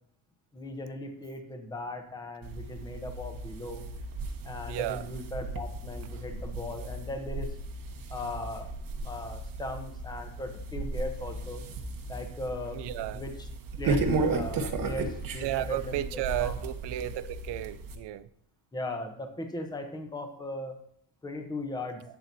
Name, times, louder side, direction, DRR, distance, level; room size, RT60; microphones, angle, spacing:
voice 1, 0.5-3.9 4.4-7.5 8.1-8.7 9.0-11.6 12.1-12.8 13.1-13.5 13.8-16.6 18.7-20.8 21.2-22.0, left 2 dB, 10° left, 0.8 m, -38 dB
sound 1, 2.4-18.0, right 3 dB, 50° right, 1.0 m, -35 dB
voice 2, 4.7-5.1 12.7-13.2 15.4-18.3, right 14 dB, 65° right, 0.6 m, -33 dB
11.5 x 7.6 x 2.7 m
cardioid pair, 160°, 44 cm